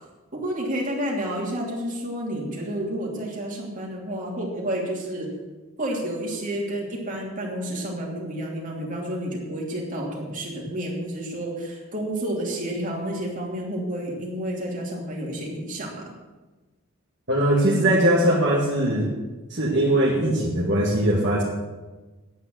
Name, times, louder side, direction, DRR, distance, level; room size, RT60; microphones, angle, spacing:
voice 1, 0.3-5.3 5.8-16.1, right 1 dB, 40° right, -2 dB, 2.9 m, -30 dB
voice 2, 17.3-19.1 19.5-21.4, right 1 dB, 60° right, -4 dB, 2.2 m, -20 dB
9.6 x 9.0 x 7.7 m, 1.2 s
head